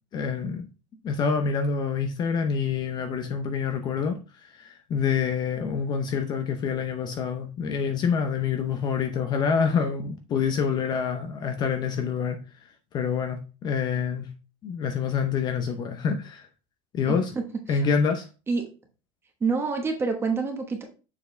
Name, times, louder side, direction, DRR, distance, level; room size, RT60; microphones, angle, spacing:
voice 1, 0.1-0.7 1.0-12.4 12.9-14.3 14.6-16.5 16.9-17.3 17.7-18.3, left 6 dB, 30° left, 0.6 m, -27 dB
voice 2, 17.1-17.4 17.7-17.9 18.5-18.7 19.4-20.8, right 4 dB, 15° right, 1.2 m, -27 dB
6.9 x 4.5 x 3.2 m
cardioid pair, 160°, 15 cm